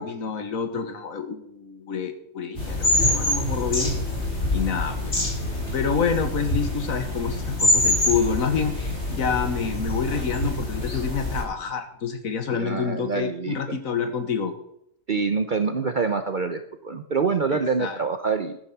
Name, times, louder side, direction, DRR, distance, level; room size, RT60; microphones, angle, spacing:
voice 1, 0.0-3.9 4.5-5.2 5.7-8.7 9.1-14.5 17.5-18.0, left 6 dB, 90° left, 7 dB, 1.7 m, -28 dB
sound 1, 2.6-11.4, left 1 dB, 55° left, 4.5 m, -25 dB
voice 2, 12.5-13.8 15.1-18.6, right 5 dB, 45° right, 8 dB, 0.8 m, -26 dB
13.5 x 9.7 x 6.0 m, 0.76 s
omnidirectional pair, 1.4 m